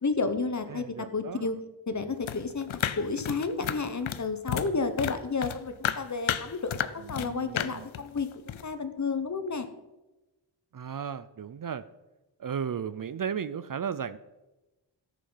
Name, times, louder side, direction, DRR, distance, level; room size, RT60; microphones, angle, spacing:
voice 1, 0.0-1.6 1.9-2.7 3.0-9.7, left 4 dB, 40° left, 10 dB, 1.0 m, -31 dB
voice 2, 0.7-1.5 7.0-7.9 10.7-11.8 12.4-14.2, right 7 dB, 45° right, 15 dB, 0.5 m, -35 dB
sound 1, 2.2-4.7 5.0-7.3 7.6-8.6, left 10 dB, 85° left, 0.7 m, -32 dB
13.5 x 8.4 x 5.6 m, 1.0 s
wide cardioid pair, 140°, 46 cm